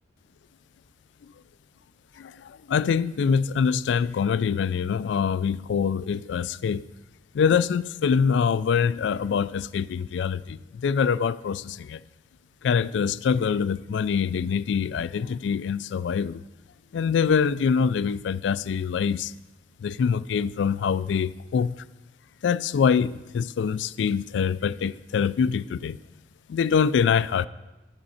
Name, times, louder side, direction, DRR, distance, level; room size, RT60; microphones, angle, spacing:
voice 1, 2.2-6.8 7.3-12.0 12.6-16.4 16.9-19.3 19.8-21.8 22.4-26.0 26.5-27.5, left 6 dB, 70° left, 0.3 m, -24 dB
11.5 x 7.7 x 4.2 m
head